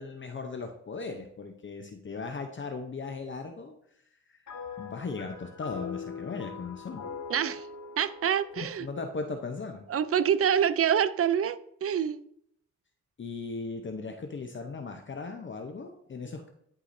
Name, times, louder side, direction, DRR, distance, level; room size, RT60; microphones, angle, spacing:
voice 1, 0.0-3.7 4.8-7.1 8.6-9.8 13.2-16.5, left 4 dB, 40° left, 0.7 m, -37 dB
sound 1, 4.5-10.0, left 5 dB, 75° left, 1.2 m, -42 dB
voice 2, 7.3-7.7 8.0-8.9 9.9-12.2, right 8 dB, 50° right, 0.5 m, -26 dB
11.5 x 4.7 x 2.6 m
cardioid pair, 80°, 29 cm